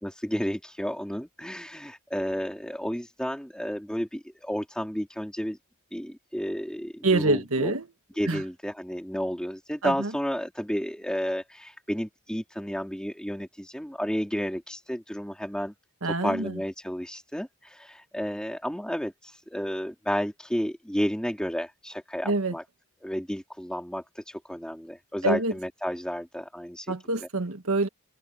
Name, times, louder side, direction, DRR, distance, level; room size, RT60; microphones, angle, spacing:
voice 1, 0.0-5.6 5.9-7.7 8.1-15.7 16.0-22.6 23.0-26.9, equal, 5° left, 3.9 m, -32 dB
voice 2, 7.0-7.9 8.3-8.4 9.8-10.1 16.0-16.6 22.2-22.5 25.2-25.5 26.9-27.9, right 3 dB, 70° right, 1.8 m, -26 dB
head